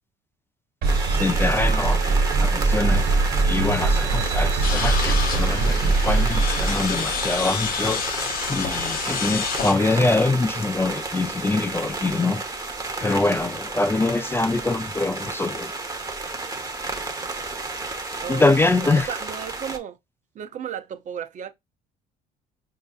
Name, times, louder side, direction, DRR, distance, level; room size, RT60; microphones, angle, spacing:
sound 1, 0.8-19.8, right 3 dB, 20° right, 0.9 m, -32 dB
sound 2, 0.8-7.4, right 3 dB, 65° right, 1.0 m, -22 dB
voice 1, 1.2-2.0 2.4-3.1 3.5-8.0 8.5-12.4 13.0-15.7 18.3-19.1, left 2 dB, 15° left, 0.4 m, -24 dB
sound 3, 4.6-9.7, left 7 dB, 60° left, 0.7 m, -29 dB
voice 2, 18.7-20.0 20.3-21.5, right 8 dB, 45° right, 0.6 m, -34 dB
5.2 x 2.7 x 2.3 m
cardioid pair, 110°, 17 cm